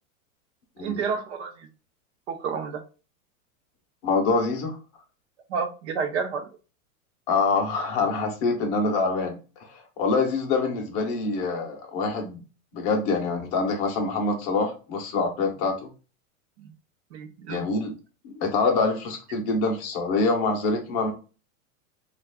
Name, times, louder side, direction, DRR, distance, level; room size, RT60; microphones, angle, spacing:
voice 1, 0.8-1.7 2.3-2.8 5.5-6.5 16.6-16.7 17.1-17.7, right 5 dB, 55° right, 8 dB, 0.7 m, -30 dB
voice 2, 4.0-4.8 7.3-9.4 9.7-12.4 12.7-15.9 17.5-17.9 18.2-21.1, left 3 dB, 30° left, 2 dB, 0.7 m, -25 dB
3.3 x 2.4 x 3.4 m, 0.34 s
supercardioid pair, 170°, 40 cm